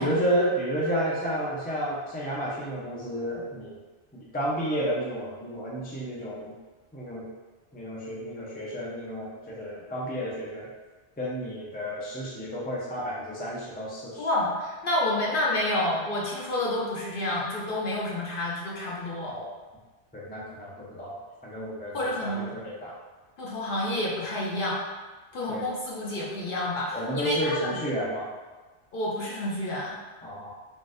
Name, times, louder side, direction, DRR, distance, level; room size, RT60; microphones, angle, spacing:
voice 1, 0.0-3.8 4.1-6.5 6.9-7.2 7.7-10.7 11.2-14.3 19.3-19.5 20.1-21.1 21.4-22.9 25.5-25.7 26.9-28.3 30.2-30.5, equal, 15° left, -5 dB, 0.3 m, -31 dB
voice 2, 14.2-19.4 21.9-22.4 23.4-24.8 25.3-27.8 28.9-30.0, left 1 dB, 55° left, -4 dB, 0.7 m, -29 dB
3.8 x 2.5 x 2.5 m, 1.3 s
omnidirectional pair, 1.2 m